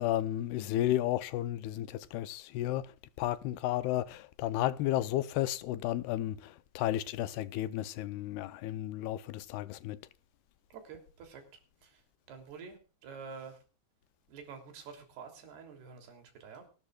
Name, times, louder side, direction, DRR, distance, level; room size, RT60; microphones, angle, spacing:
voice 1, 0.0-2.9 3.2-10.0, left 14 dB, 80° left, 2.8 m, -33 dB
voice 2, 10.7-11.4 11.8-12.0 12.3-13.6 14.3-16.7, right 5 dB, 85° right, 5.2 m, -48 dB
27.5 x 13.0 x 2.4 m
omnidirectional pair, 4.5 m